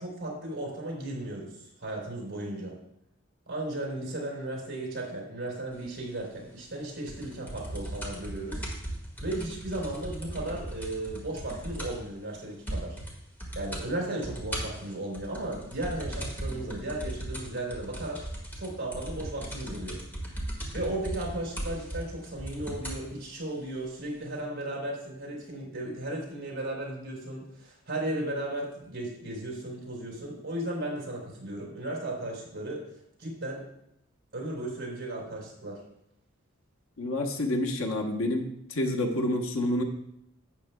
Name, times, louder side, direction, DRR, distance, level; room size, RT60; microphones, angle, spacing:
voice 1, 0.0-1.5 1.8-2.7 3.5-8.6 9.2-13.0 13.5-18.2 18.6-20.0 20.7-32.8 33.2-33.7 34.3-35.8, right 1 dB, 55° right, -3 dB, 3.6 m, -35 dB
sound 1, 7.1-12.1 12.3-12.4 12.7-13.1 13.4-13.9 14.2-23.1 23.8-23.9, right 1 dB, 10° left, 1.7 m, -37 dB
voice 2, 37.0-39.8, left 1 dB, 75° left, 3 dB, 1.0 m, -28 dB
11.5 x 8.7 x 2.2 m, 0.77 s
head